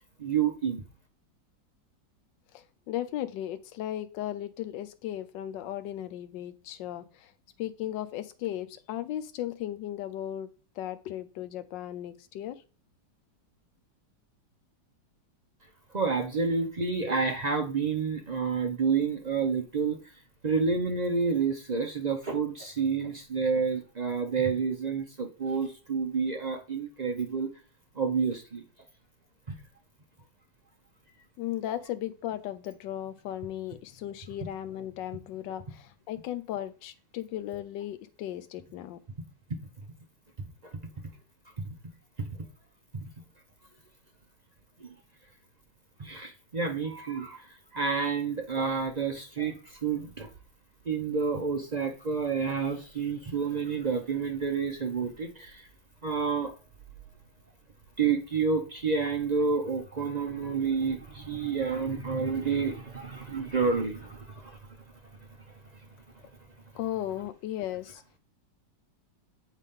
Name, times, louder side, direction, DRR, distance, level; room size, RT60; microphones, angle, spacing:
voice 1, 0.2-0.8 15.9-20.0 20.4-27.5 27.9-28.6 29.5-29.6 40.4-40.7 41.6-41.7 42.2-42.4 42.9-43.1 44.8-44.9 46.0-50.3 50.9-55.7 56.0-56.5 58.0-64.6, right 5 dB, 65° right, 2 dB, 0.4 m, -29 dB
voice 2, 2.5-7.3 7.6-10.5 10.8-12.6 31.4-39.0 66.7-68.0, left 12 dB, 80° left, 9 dB, 1.3 m, -36 dB
8.1 x 4.1 x 3.7 m, 0.36 s
omnidirectional pair, 2.0 m